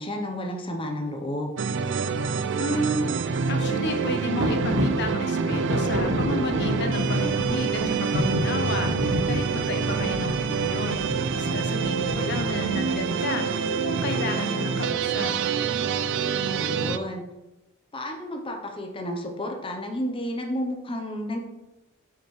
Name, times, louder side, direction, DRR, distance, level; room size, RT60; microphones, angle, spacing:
voice 1, 0.0-1.5 12.0-12.4 16.5-17.2 17.9-21.4, left 1 dB, 25° left, 2 dB, 0.8 m, -31 dB
sound 1, 1.6-17.0, right 5 dB, 60° right, 0.4 m, -26 dB
voice 2, 2.5-8.9 9.2-11.1 11.3-13.5 13.8-15.3, left 2 dB, 55° left, 5 dB, 0.8 m, -32 dB
sound 2, 4.4-13.0, equal, 75° right, 1.2 m, -30 dB
8.6 x 5.8 x 3.2 m, 0.97 s
head